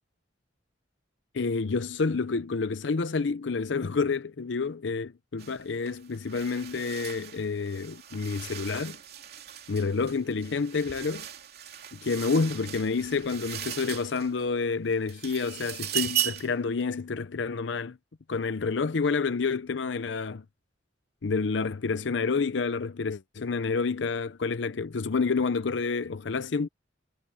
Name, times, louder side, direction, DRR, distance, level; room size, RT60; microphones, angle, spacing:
voice 1, 1.3-9.0 9.7-11.3 11.9-18.0 18.3-20.4 21.2-26.7, left 4 dB, 70° left, 0.6 m, -29 dB
sound 1, 5.4-5.6 5.9-14.5 14.9-16.6, right 11 dB, 55° right, 3.0 m, -37 dB
head